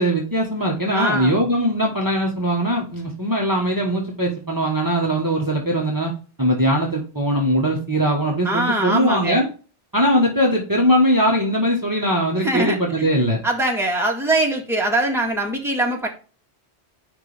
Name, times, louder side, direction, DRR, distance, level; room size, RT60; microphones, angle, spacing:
voice 1, 0.0-6.1 6.4-9.5 9.9-13.4, equal, 20° right, -2 dB, 1.5 m, -20 dB
voice 2, 1.0-1.4 8.4-9.4 12.4-13.1 13.4-16.1, right 1 dB, ahead, -1 dB, 1.8 m, -22 dB
10.5 x 3.7 x 3.5 m, 0.35 s
omnidirectional pair, 1.1 m